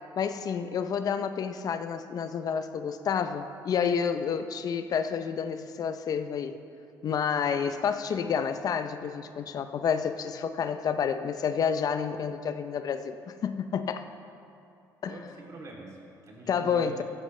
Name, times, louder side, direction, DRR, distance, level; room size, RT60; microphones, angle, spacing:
voice 1, 0.2-6.5 7.0-14.1 15.0-15.1 16.5-17.0, left 7 dB, 55° left, 9 dB, 0.6 m, -29 dB
voice 2, 15.0-17.0, right 2 dB, 45° right, -2 dB, 3.0 m, -45 dB
14.5 x 13.5 x 3.3 m, 2.6 s
supercardioid pair, 80°, 8 cm